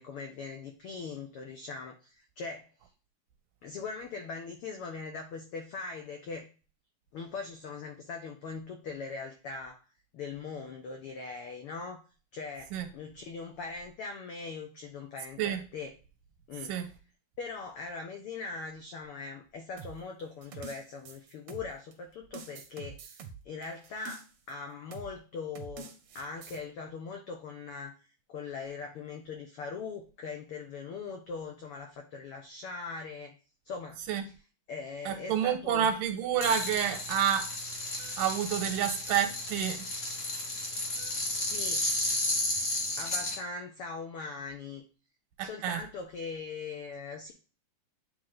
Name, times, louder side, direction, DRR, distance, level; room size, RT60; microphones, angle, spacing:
voice 1, 0.0-2.7 3.6-6.5 7.1-9.8 10.1-12.0 12.3-15.9 16.5-16.7 17.4-33.4 33.6-34.3 34.7-35.9 41.3-41.8 43.0-44.8 45.4-47.3, left 4 dB, 90° left, 1.2 m, -41 dB
sound 1, 19.8-21.9 22.3-24.5 24.9-25.2 25.5-26.6, right 5 dB, 70° right, 1.4 m, -46 dB
voice 2, 35.1-37.5 38.0-39.8 41.0-41.1 45.4-45.8, right 9 dB, 90° right, 2.6 m, -29 dB
sound 2, 36.4-43.4, left 2 dB, 40° left, 1.1 m, -33 dB
9.2 x 3.2 x 3.7 m
omnidirectional pair, 3.7 m